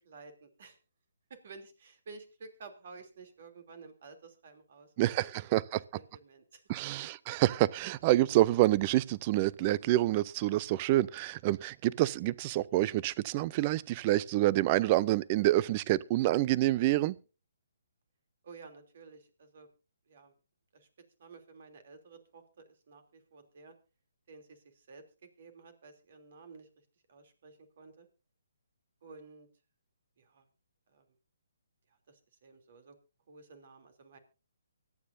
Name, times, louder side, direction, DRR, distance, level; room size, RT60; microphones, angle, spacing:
voice 1, 0.0-0.8 1.4-5.6 5.9-6.6 18.4-19.7 20.1-20.3 20.7-20.9 21.2-23.7 24.3-25.0 25.4-26.7 27.1-28.1 29.0-29.5 30.2-30.5 30.9-31.0 32.1-33.0 33.3-34.2, right 4 dB, 55° right, 3.1 m, -53 dB
voice 2, 5.0-5.8 6.7-17.2, right 16 dB, 30° right, 0.5 m, -27 dB
24.0 x 9.4 x 2.7 m
figure-of-eight pair, 145°, 0 cm